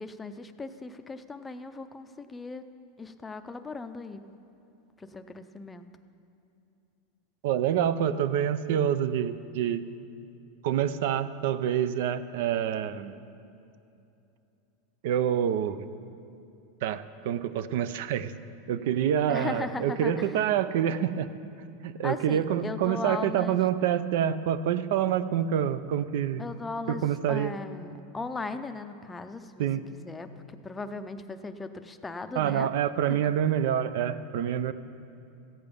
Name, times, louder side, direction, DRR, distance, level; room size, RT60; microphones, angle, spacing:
voice 1, 0.0-2.6 3.0-4.2 5.0-5.9 19.3-20.3 22.0-23.6 26.4-32.7 33.1-33.3, left 3 dB, 10° left, 8 dB, 0.5 m, -38 dB
voice 2, 7.4-9.9 10.6-13.2 15.0-15.8 16.8-18.3 18.7-21.3 21.8-26.4 26.9-27.5 29.6-29.8 32.4-34.7, right 9 dB, 65° right, 14 dB, 0.5 m, -27 dB
14.5 x 8.9 x 5.2 m, 2.7 s
supercardioid pair, 145°, 0 cm